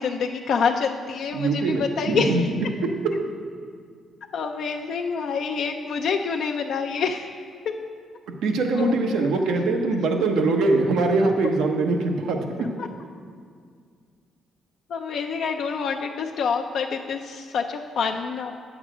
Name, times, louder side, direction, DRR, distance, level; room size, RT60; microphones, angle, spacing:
voice 1, 0.0-2.5 4.3-7.3 7.7-7.8 8.8-9.3 12.8-12.9 14.9-18.6, left 5 dB, 70° left, 2 dB, 0.4 m, -27 dB
voice 2, 1.3-2.4 2.8-3.3 8.3-12.8, right 3 dB, 85° right, 3 dB, 0.9 m, -23 dB
8.9 x 7.1 x 4.9 m, 2.1 s
cardioid pair, 90°, 0 cm